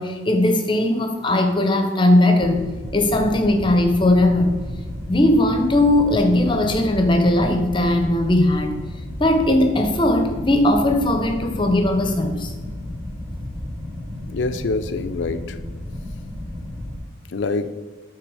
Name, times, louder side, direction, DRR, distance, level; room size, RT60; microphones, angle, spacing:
voice 1, 0.0-2.6 2.9-4.5 5.1-8.7 9.2-12.5, left 1 dB, 25° left, 5 dB, 0.7 m, -18 dB
sound 1, 2.4-17.0, left 1 dB, 20° right, 1.0 m, -33 dB
voice 2, 14.2-15.6 17.3-17.7, left 3 dB, 60° left, 10 dB, 0.4 m, -25 dB
8.2 x 3.4 x 4.7 m, 1.3 s
head